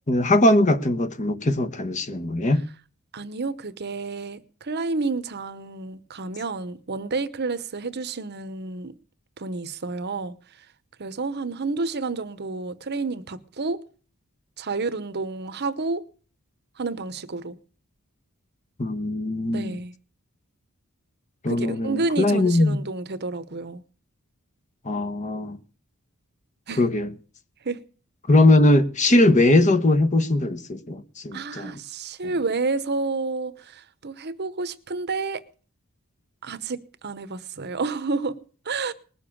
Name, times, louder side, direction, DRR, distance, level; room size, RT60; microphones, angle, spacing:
voice 1, 0.1-2.6 18.8-19.8 21.4-22.8 24.8-25.6 26.8-27.1 28.3-31.8 32.2-32.3, left 1 dB, 35° left, 1.1 m, -20 dB
voice 2, 3.1-8.9 9.4-10.3 11.0-13.8 14.6-16.0 16.8-17.6 19.5-19.9 21.5-23.8 26.7-26.9 27.6-27.8 31.3-35.4 36.4-38.4 38.7-38.9, right 3 dB, 50° right, 0.9 m, -30 dB
20.0 x 7.0 x 8.6 m
head